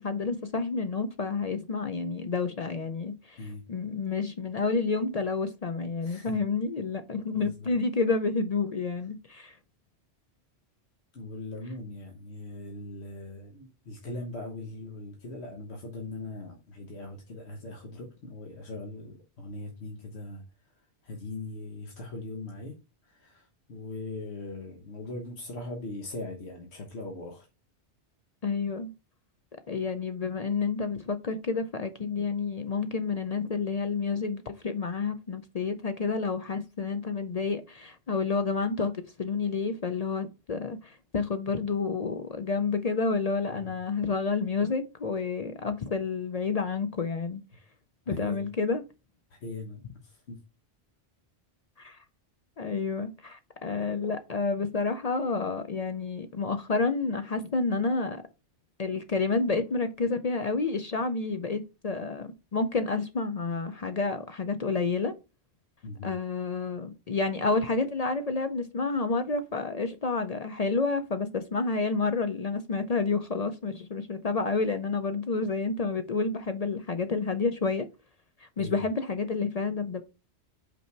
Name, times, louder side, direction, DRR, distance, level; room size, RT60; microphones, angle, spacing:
voice 1, 0.0-3.4 3.7-9.6 28.4-28.9 29.7-38.9 39.2-47.4 48.1-48.8 51.8-52.0 52.6-58.2 58.8-65.1 66.0-77.9 78.6-80.0, left 4 dB, 50° left, 0.5 m, -29 dB
voice 2, 6.0-6.4 7.3-7.7 11.1-22.8 23.0-27.5 43.5-43.7 48.1-48.4 49.3-50.4 65.8-66.1 78.6-78.8, left 2 dB, 70° left, 1.4 m, -40 dB
5.5 x 4.3 x 4.4 m
omnidirectional pair, 1.2 m